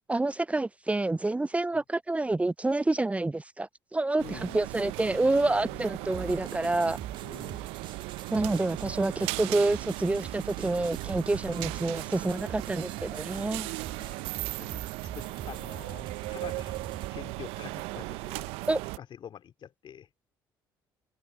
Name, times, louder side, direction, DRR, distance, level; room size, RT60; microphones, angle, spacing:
voice 1, 0.1-7.0 8.3-13.7 18.7-18.8, right 2 dB, 15° right, 0.4 m, -28 dB
voice 2, 4.2-4.6 5.7-5.8 7.2-7.7 11.5-11.6 13.3-13.5 13.8-14.2 14.5-14.9 15.1-16.8 17.1-18.5 19.0-20.1, left 9 dB, 55° left, 2.5 m, -46 dB
sound 1, 4.2-19.0, right 23 dB, 75° right, 0.5 m, -37 dB
sound 2, 6.1-17.1, right 9 dB, 55° right, 1.8 m, -44 dB
open air
hypercardioid pair, 55°, 10 cm